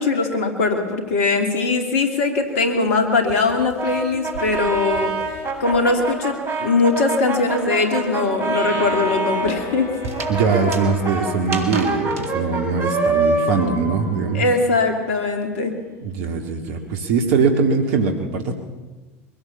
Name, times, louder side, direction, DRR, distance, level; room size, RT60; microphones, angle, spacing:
voice 1, 0.0-5.1 5.6-9.9 14.3-15.7, left 3 dB, 75° left, 5 dB, 2.7 m, -20 dB
sound 1, 2.4-6.2 6.5-12.3, right 4 dB, 80° right, 2.2 m, -37 dB
Brass instrument, 3.8-9.5 10.1-14.9, right 2 dB, 30° right, 7.8 m, -25 dB
sound 2, 8.5-14.8, left 2 dB, 45° left, 6.4 m, -37 dB
voice 2, 10.3-14.4 16.0-18.5, right 5 dB, 65° right, 4 dB, 2.1 m, -21 dB
22.5 x 16.5 x 7.1 m, 1.2 s
hypercardioid pair, 75°, 8 cm